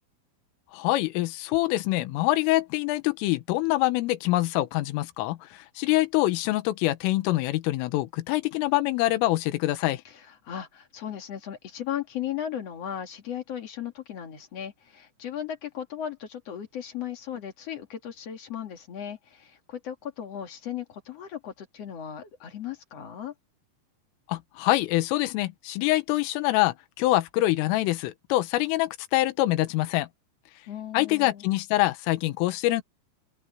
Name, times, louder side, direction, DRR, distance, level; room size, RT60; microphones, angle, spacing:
voice 1, 0.7-10.0 24.3-30.1 30.9-32.8, left 17 dB, 85° left, 3.7 m, -25 dB
voice 2, 10.0-23.3 30.7-31.5, left 9 dB, 55° left, 1.8 m, -36 dB
open air
omnidirectional pair, 5.8 m